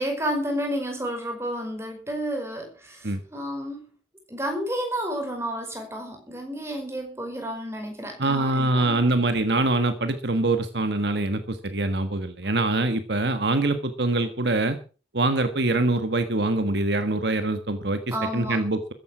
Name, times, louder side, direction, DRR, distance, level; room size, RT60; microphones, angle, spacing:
voice 1, 0.0-3.8 4.3-9.0 18.1-18.6, equal, 15° right, 4 dB, 5.0 m, -31 dB
voice 2, 8.2-14.8 15.1-18.9, right 2 dB, 65° right, 8 dB, 1.6 m, -24 dB
14.5 x 10.5 x 6.2 m, 0.36 s
head